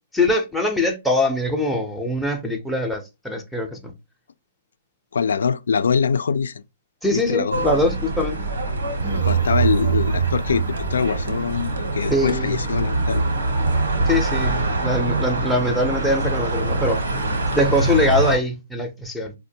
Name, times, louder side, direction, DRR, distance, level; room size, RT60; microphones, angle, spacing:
voice 1, 0.1-3.9 7.0-8.4 12.1-12.6 14.1-17.0 17.5-19.3, left 1 dB, ahead, 0.5 m, -22 dB
voice 2, 5.1-6.6 7.1-7.7 9.2-13.3, left 6 dB, 80° left, 0.3 m, -23 dB
sound 1, 7.5-18.4, right 2 dB, 85° right, 1.1 m, -24 dB
sound 2, 9.0-11.9, right 10 dB, 60° right, 0.6 m, -24 dB
4.4 x 2.1 x 2.7 m
hypercardioid pair, 160°, 0 cm